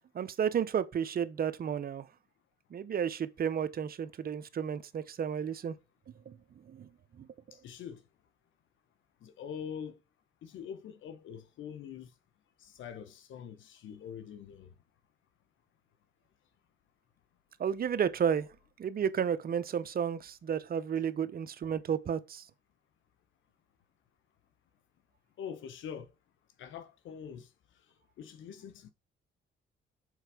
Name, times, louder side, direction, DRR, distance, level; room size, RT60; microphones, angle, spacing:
voice 1, 0.1-2.1 2.7-5.7 6.3-6.4 6.7-6.9 7.2-7.3 17.6-18.5 18.8-22.4, right 8 dB, 50° right, 0.8 m, -32 dB
voice 2, 7.5-8.0 9.2-10.0 10.4-12.1 12.6-14.7 25.4-26.1 26.6-27.5 27.9-28.9, left 8 dB, 75° left, 1.0 m, -44 dB
6.5 x 4.5 x 4.9 m
cardioid pair, 90°, 20 cm